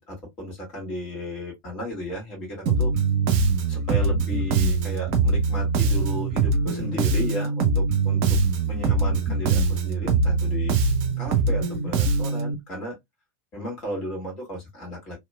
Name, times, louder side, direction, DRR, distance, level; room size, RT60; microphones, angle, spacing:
voice 1, 0.0-2.9 3.7-8.4 8.7-10.8 11.2-13.0 13.5-15.2, left 1 dB, 35° left, 1.9 m, -34 dB
Bass guitar, 2.7-12.5, right 4 dB, 45° right, 0.6 m, -22 dB
3.0 x 2.9 x 2.2 m
figure-of-eight pair, 90°, 0 cm